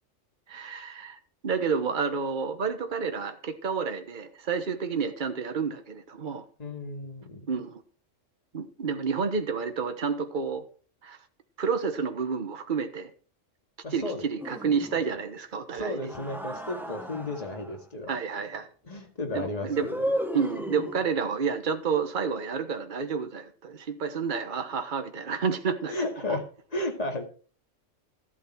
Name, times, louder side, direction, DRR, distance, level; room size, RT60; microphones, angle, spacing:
voice 1, 0.5-6.4 7.5-7.8 8.5-10.6 11.0-11.2 11.6-13.1 13.9-16.1 18.1-18.7 19.3-19.9 20.3-26.0 26.3-26.4, right 5 dB, 40° right, 8 dB, 1.3 m, -30 dB
voice 2, 6.6-7.4 13.8-14.3 15.7-18.2 18.9-20.0 25.9-26.4 26.7-27.2, left 2 dB, 30° left, 2 dB, 2.3 m, -33 dB
sound 1, 14.4-15.2 16.0-17.8 19.7-21.3, equal, ahead, 0.9 m, -34 dB
13.5 x 8.7 x 4.5 m, 0.41 s
omnidirectional pair, 1.3 m